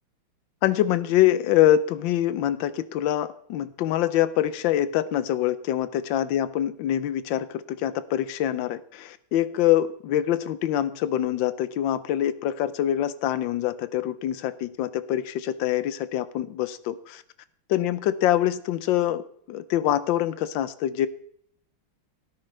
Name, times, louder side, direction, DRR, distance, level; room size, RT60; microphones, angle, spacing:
voice 1, 0.6-17.2 17.7-19.2 19.5-21.1, left 12 dB, 75° left, 15 dB, 1.3 m, -25 dB
17.0 x 9.7 x 3.3 m, 0.63 s
omnidirectional pair, 2.2 m